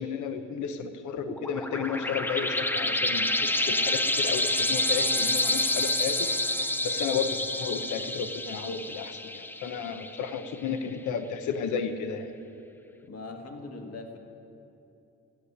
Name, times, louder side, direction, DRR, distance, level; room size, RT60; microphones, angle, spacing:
voice 1, 0.0-6.3 6.8-12.3, left 6 dB, 75° left, 9 dB, 0.9 m, -33 dB
sound 1, 1.3-10.5, left 1 dB, 5° left, 0.4 m, -28 dB
voice 2, 13.0-14.2, left 3 dB, 55° left, 4 dB, 1.7 m, -41 dB
13.5 x 8.3 x 9.9 m, 2.8 s
cardioid pair, 90°, 30 cm